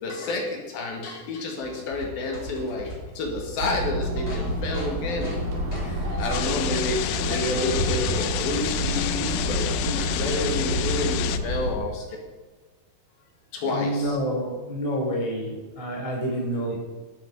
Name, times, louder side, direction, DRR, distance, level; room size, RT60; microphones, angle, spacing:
voice 1, 0.0-5.4 6.2-12.1 13.5-14.2, left 2 dB, 65° left, 1 dB, 3.5 m, -30 dB
sound 1, 1.6-6.6, equal, 30° left, 4.0 m, -39 dB
sound 2, 3.6-11.8, equal, 60° right, 3.5 m, -28 dB
sound 3, 6.3-11.4, left 12 dB, 80° left, 2.3 m, -30 dB
voice 2, 13.6-16.8, equal, 10° right, -2 dB, 1.7 m, -29 dB
11.5 x 9.5 x 5.3 m, 1.3 s
omnidirectional pair, 4.8 m